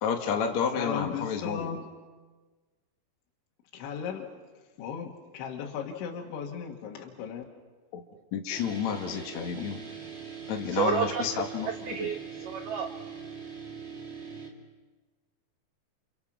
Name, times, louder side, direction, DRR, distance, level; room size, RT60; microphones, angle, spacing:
voice 1, 0.0-1.8 7.9-8.0 8.3-9.8 10.5-11.7 12.0-12.1, left 7 dB, 60° left, 4 dB, 1.9 m, -30 dB
voice 2, 0.8-1.8 3.7-4.3 4.8-7.4, left 7 dB, 75° left, 0 dB, 4.0 m, -36 dB
sound 1, 8.5-14.5, right 6 dB, 35° right, 1.0 m, -42 dB
voice 3, 10.7-11.4 11.9-12.9, right 7 dB, 80° right, 6 dB, 1.9 m, -30 dB
29.5 x 29.0 x 6.1 m, 1.3 s
omnidirectional pair, 5.4 m